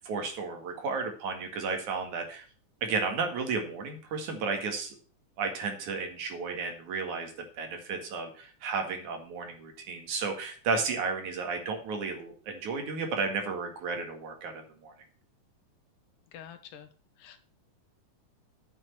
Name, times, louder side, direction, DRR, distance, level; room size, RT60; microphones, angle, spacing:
voice 1, 0.0-2.4 2.8-5.0 5.4-14.9, right 4 dB, 65° right, 4 dB, 3.3 m, -33 dB
voice 2, 16.3-16.9 17.2-17.4, left 9 dB, 80° left, 9 dB, 2.7 m, -47 dB
8.9 x 6.2 x 7.6 m, 0.40 s
omnidirectional pair, 3.8 m